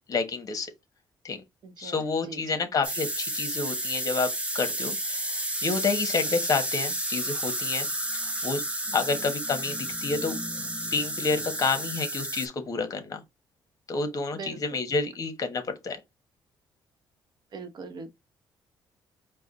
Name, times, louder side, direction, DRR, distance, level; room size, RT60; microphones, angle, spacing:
voice 1, 0.1-0.7 1.2-1.4 1.8-4.3 4.5-7.9 8.4-8.6 8.9-10.4 10.9-13.2 13.9-16.0, left 4 dB, 45° left, 1.3 m, -29 dB
voice 2, 1.6-2.7 8.9-9.3 14.3-14.6 17.5-18.1, right 4 dB, 55° right, 0.9 m, -42 dB
sound 1, 2.8-12.5, right 1 dB, 15° right, 1.1 m, -31 dB
4.7 x 2.3 x 4.0 m
cardioid pair, 100°, 9 cm